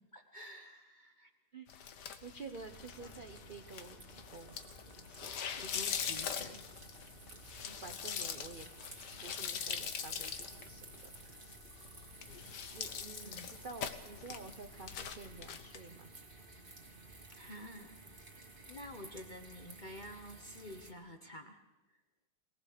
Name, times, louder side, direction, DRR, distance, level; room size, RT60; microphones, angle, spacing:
voice 1, 0.1-1.3 5.6-6.8 13.2-13.5 17.3-18.0 18.6-21.6, left 1 dB, 30° left, 5 dB, 1.0 m, -50 dB
voice 2, 1.5-4.0 4.3-4.6 4.9-5.4 7.6-8.7 9.2-11.5 12.7-16.1, right 3 dB, 45° right, 6 dB, 0.6 m, -50 dB
sound 1, 1.7-15.8, left 7 dB, 55° left, 1.6 m, -43 dB
sound 2, 2.5-20.9, right 2 dB, 25° right, 2.2 m, -54 dB
23.0 x 18.5 x 6.7 m, 0.99 s
omnidirectional pair, 2.3 m